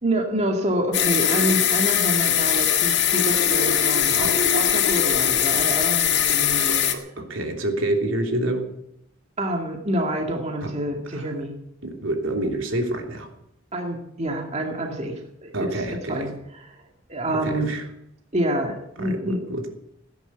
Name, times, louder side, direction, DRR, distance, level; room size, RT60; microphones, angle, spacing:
voice 1, 0.0-6.8 9.4-11.5 13.7-15.8 16.1-16.8 17.1-17.7 18.3-19.4, right 1 dB, 35° right, 2 dB, 2.2 m, -27 dB
sound 1, 0.9-6.9, left 9 dB, 60° left, 1.9 m, -21 dB
voice 2, 7.2-8.6 10.6-10.7 11.1-11.2 11.8-13.3 15.5-16.3 17.3-17.8 19.0-19.7, right 1 dB, 75° right, 3 dB, 3.1 m, -27 dB
17.0 x 10.5 x 8.2 m, 0.76 s
head